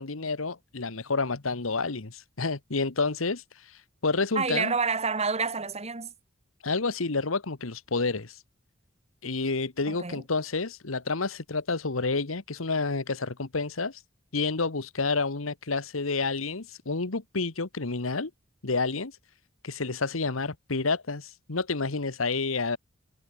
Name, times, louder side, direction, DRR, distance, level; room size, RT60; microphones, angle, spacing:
voice 1, 0.0-3.4 4.0-4.7 6.6-8.4 9.2-14.0 14.3-18.3 18.6-19.1 19.6-22.8, left 3 dB, 80° left, 1.4 m, -29 dB
voice 2, 4.4-6.1 9.9-10.2, right 5 dB, 30° right, 2.3 m, -28 dB
head